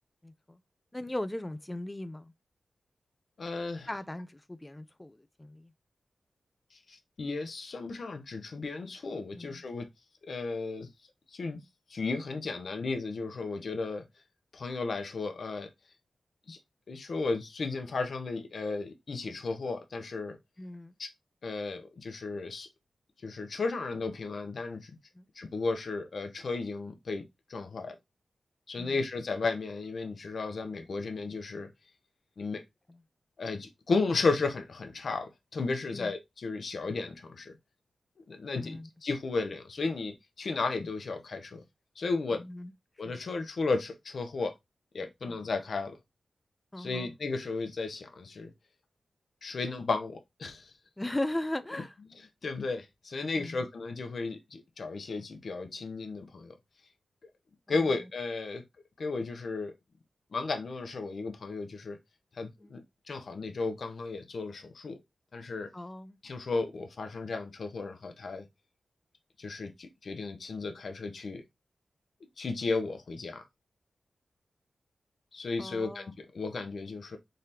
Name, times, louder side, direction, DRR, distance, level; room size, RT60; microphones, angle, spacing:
voice 1, 0.2-0.6 0.9-2.3 3.9-5.7 9.3-9.7 20.6-20.9 25.1-25.2 28.8-29.0 32.9-33.0 35.9-36.1 38.5-38.9 42.3-42.7 43.0-43.1 46.7-47.1 51.0-52.0 53.4-53.7 57.7-58.1 62.6-62.8 65.7-66.2 75.6-76.1, left 1 dB, 15° left, 0.4 m, -38 dB
voice 2, 3.4-3.9 6.7-9.9 10.3-10.9 11.3-11.6 11.9-14.0 14.5-15.7 16.5-16.6 16.9-20.4 21.0-21.1 21.4-22.7 23.2-24.9 25.4-27.2 27.5-28.0 28.7-31.7 32.4-32.6 33.4-37.5 38.3-41.6 42.0-42.4 43.0-44.5 44.9-46.0 46.8-48.5 49.4-50.7 52.4-56.5 57.7-58.6 59.0-59.7 60.3-62.0 62.4-65.0 65.3-65.7 66.2-68.5 69.4-71.4 72.4-73.4 75.3-77.2, left 3 dB, 60° left, 0.8 m, -34 dB
3.8 x 3.2 x 2.8 m
wide cardioid pair, 100°, 0 cm